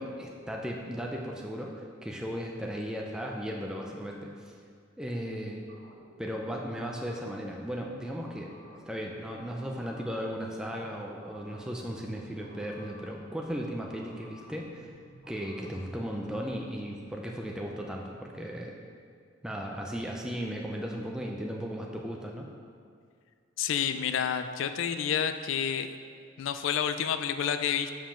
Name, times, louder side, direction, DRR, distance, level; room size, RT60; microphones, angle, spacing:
voice 1, 0.0-4.5 5.0-5.7 6.2-14.9 15.3-18.7 19.4-22.5, equal, 5° right, -1 dB, 0.4 m, -36 dB
sound 1, 5.7-15.7, right 1 dB, 75° right, 1.0 m, -54 dB
voice 2, 23.6-25.9 26.4-27.9, left 8 dB, 80° left, 9 dB, 0.3 m, -29 dB
5.6 x 5.0 x 5.7 m, 2.2 s
head